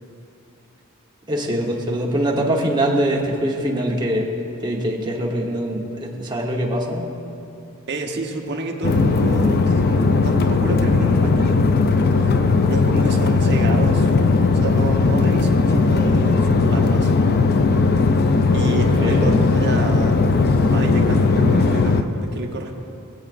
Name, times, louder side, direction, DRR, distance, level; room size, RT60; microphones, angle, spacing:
voice 1, 1.3-4.3 4.6-7.1 18.9-19.3, right 1 dB, 20° right, -1 dB, 1.1 m, -23 dB
voice 2, 7.9-11.6 12.7-14.1 14.5-17.1 18.5-20.2 20.6-22.7, right 3 dB, 50° right, 1 dB, 1.0 m, -29 dB
sound 1, 8.8-22.0, left 3 dB, 45° left, 0.5 m, -17 dB
20.0 x 8.1 x 2.5 m, 2.8 s
head